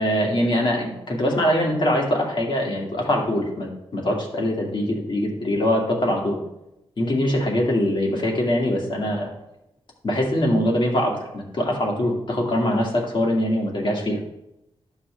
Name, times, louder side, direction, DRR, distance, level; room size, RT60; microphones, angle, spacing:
voice 1, 0.0-6.4 7.0-9.3 10.0-14.2, left 1 dB, 50° left, -1 dB, 2.1 m, -23 dB
11.5 x 5.7 x 3.3 m, 0.87 s
cardioid pair, 80°, 11 cm